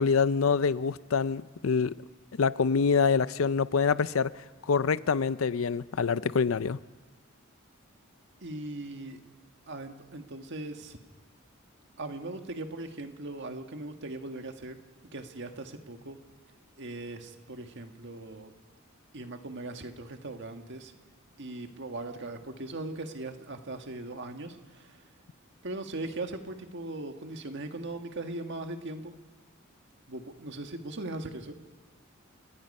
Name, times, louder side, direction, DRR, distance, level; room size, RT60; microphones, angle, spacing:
voice 1, 0.0-1.9 2.4-4.3 4.7-6.8, left 5 dB, 75° left, 0.5 m, -25 dB
voice 2, 8.4-9.2 9.7-11.0 12.0-14.8 15.1-16.2 16.8-18.5 19.1-20.9 21.4-25.0 25.6-29.1 30.1-31.6, right 2 dB, 60° right, 1.6 m, -39 dB
29.5 x 18.5 x 5.5 m
head